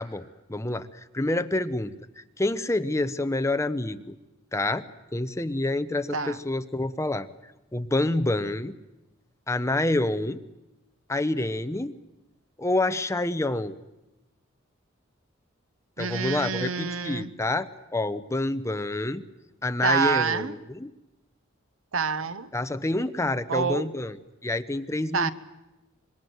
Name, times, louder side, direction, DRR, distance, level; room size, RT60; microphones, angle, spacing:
voice 1, 0.0-4.2 4.5-4.8 5.1-7.3 7.7-8.7 9.5-10.4 11.1-11.9 12.6-13.7 16.0-19.2 19.6-20.9 22.5-24.2 24.4-25.3, left 2 dB, 15° left, 0.9 m, -27 dB
voice 2, 16.0-17.3 19.8-20.5 21.9-22.5 23.5-23.9 25.1-25.3, right 5 dB, 75° right, 1.0 m, -27 dB
26.0 x 22.0 x 8.0 m
head